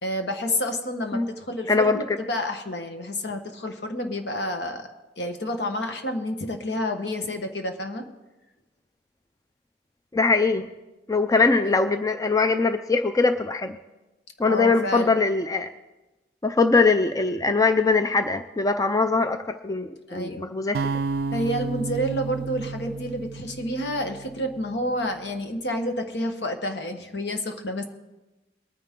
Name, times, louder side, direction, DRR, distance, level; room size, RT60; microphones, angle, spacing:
voice 1, 0.0-4.9 5.2-8.0 14.5-15.2 20.1-20.5 21.3-27.8, left 1 dB, 70° left, 5 dB, 1.4 m, -29 dB
voice 2, 1.7-2.0 10.1-10.7 11.1-13.8 14.4-15.7 16.4-20.8, left 3 dB, 20° left, 9 dB, 0.4 m, -22 dB
sound 1, 20.7-24.9, right 5 dB, 60° right, 0.3 m, -32 dB
21.5 x 9.4 x 3.7 m, 1.1 s
head